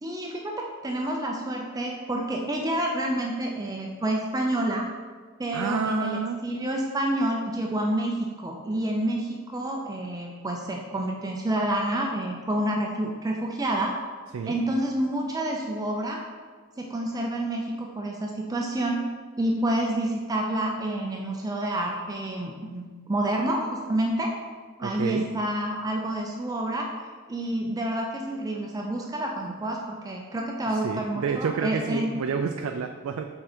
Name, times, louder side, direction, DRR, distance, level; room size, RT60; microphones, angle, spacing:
voice 1, 0.0-4.9 5.4-13.9 14.5-16.2 16.8-19.0 19.4-24.3 24.8-26.9 27.3-32.1, right 1 dB, 15° right, 0 dB, 0.4 m, -28 dB
voice 2, 5.5-6.4 14.3-14.6 24.8-25.3 30.7-33.3, right 6 dB, 75° right, 5 dB, 0.4 m, -29 dB
6.6 x 3.7 x 4.3 m, 1.5 s
head